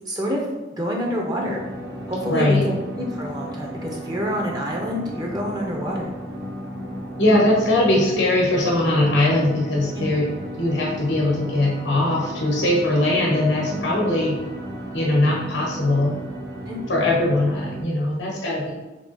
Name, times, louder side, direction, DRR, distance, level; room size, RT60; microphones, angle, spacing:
voice 1, 0.1-0.5 0.8-1.6 2.1-6.1 9.9-10.1 13.7-14.0 16.7-16.8, equal, 20° right, -1 dB, 0.5 m, -27 dB
sound 1, 1.5-17.8, equal, 65° right, 0.8 m, -34 dB
voice 2, 2.2-2.6 7.2-10.3 10.6-14.4 14.9-16.1 16.9-18.7, left 1 dB, 85° left, -3 dB, 0.9 m, -20 dB
3.5 x 3.3 x 4.0 m, 1.1 s
head